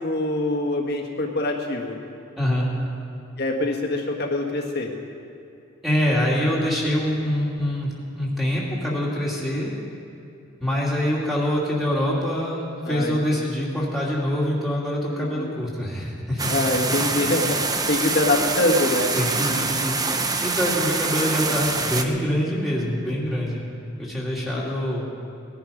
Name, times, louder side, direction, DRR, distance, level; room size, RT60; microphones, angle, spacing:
voice 1, 0.0-2.0 3.4-4.9 12.9-13.4 15.1-15.6 16.5-17.6 17.9-19.1, left 2 dB, 50° left, 1 dB, 1.6 m, -24 dB
voice 2, 2.4-2.7 5.8-9.7 10.6-16.7 19.1-23.6 24.0-25.1, equal, ahead, -6 dB, 2.5 m, -25 dB
sound 1, 16.4-22.0, right 4 dB, 20° right, 0.6 m, -25 dB
19.0 x 11.0 x 5.2 m, 2.6 s
head